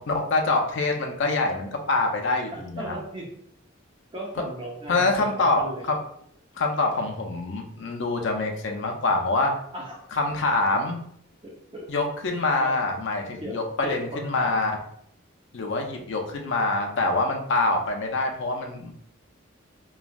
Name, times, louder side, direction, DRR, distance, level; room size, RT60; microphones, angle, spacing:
voice 1, 0.1-3.0 4.9-6.0 6.6-9.6 10.1-11.0 11.9-14.7 15.5-19.1, left 2 dB, 60° left, 3 dB, 0.5 m, -25 dB
voice 2, 2.8-3.3 4.1-5.8 9.7-10.0 11.4-11.9 12.6-12.7 13.4-14.5, right 1 dB, 25° right, -2 dB, 0.6 m, -36 dB
3.1 x 2.5 x 2.3 m, 0.69 s
head